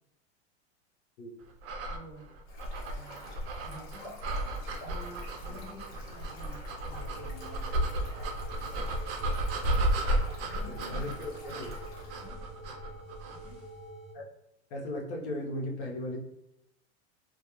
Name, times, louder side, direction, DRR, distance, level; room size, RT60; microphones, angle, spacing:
sound 1, 1.6-13.5, right 1 dB, 55° right, 0.6 m, -33 dB
voice 1, 1.9-2.2 2.9-4.1 4.8-7.9 10.4-11.1 12.2-12.4 13.3-13.6, equal, 30° left, -1 dB, 0.7 m, -50 dB
Stream, 2.5-12.3, left 1 dB, 50° left, 1.1 m, -50 dB
sound 2, 6.9-14.1, right 2 dB, ahead, 0.3 m, -48 dB
voice 2, 10.7-11.7 14.1-14.3 14.7-16.2, left 1 dB, 70° left, -1 dB, 0.9 m, -37 dB
2.3 x 2.2 x 3.0 m, 0.82 s
supercardioid pair, 130°, 34 cm